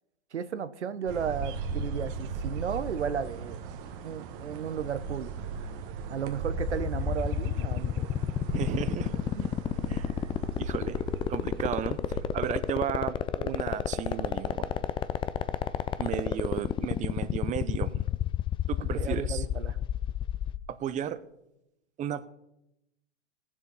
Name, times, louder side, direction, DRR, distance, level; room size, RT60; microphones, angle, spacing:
voice 1, 0.3-3.6 4.0-5.3 6.1-8.1 9.3-9.5 9.9-10.2 13.4-13.6 18.9-19.8, right 7 dB, 90° right, 13 dB, 0.9 m, -34 dB
sound 1, 1.1-13.0, right 4 dB, 50° right, 1.5 m, -38 dB
sound 2, 6.6-20.6, left 10 dB, 15° left, 0.4 m, -29 dB
voice 2, 8.5-9.1 9.9-10.1 10.6-11.0 11.3-14.7 16.0-18.1 18.7-19.4 20.7-21.2 22.0-22.3, right 10 dB, 20° right, 12 dB, 0.7 m, -34 dB
18.5 x 7.2 x 5.5 m, 0.86 s
hypercardioid pair, 110°, 33 cm